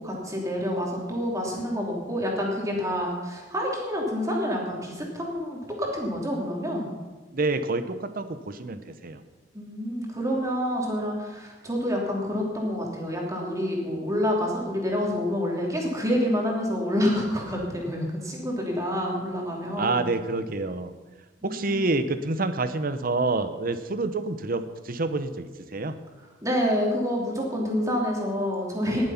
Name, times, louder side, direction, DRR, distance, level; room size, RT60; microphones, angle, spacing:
voice 1, 0.0-6.9 9.5-20.0 21.4-21.7 26.4-29.1, equal, 15° right, -1 dB, 3.0 m, -28 dB
voice 2, 7.3-9.2 19.8-20.9 21.4-26.0, right 3 dB, 50° right, 11 dB, 0.8 m, -28 dB
19.0 x 7.6 x 5.8 m, 1.2 s
head